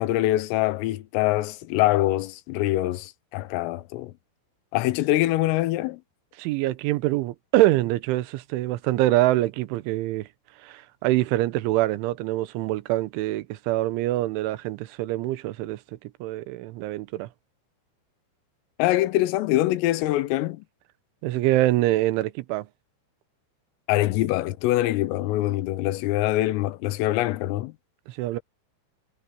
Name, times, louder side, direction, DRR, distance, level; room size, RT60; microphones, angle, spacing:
voice 1, 0.0-4.1 4.7-6.0 18.8-20.7 23.9-27.7, left 16 dB, 85° left, 3.6 m, -24 dB
voice 2, 6.4-10.3 10.6-15.8 16.2-17.3 21.2-22.7 28.1-28.4, right 16 dB, 75° right, 3.3 m, -24 dB
omnidirectional pair, 5.8 m